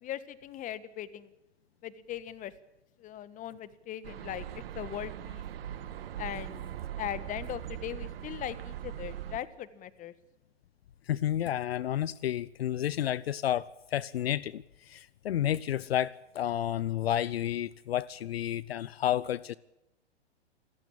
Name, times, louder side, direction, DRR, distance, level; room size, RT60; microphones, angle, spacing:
voice 1, 0.0-1.3 1.8-2.5 3.0-4.4 4.7-5.4 6.2-10.1, left 11 dB, 25° left, 1.6 m, -39 dB
sound 1, 4.0-9.4, right 11 dB, 60° right, 2.0 m, -40 dB
voice 2, 11.1-19.6, left 11 dB, 60° left, 0.8 m, -31 dB
28.5 x 15.0 x 8.7 m
hypercardioid pair, 115°, 34 cm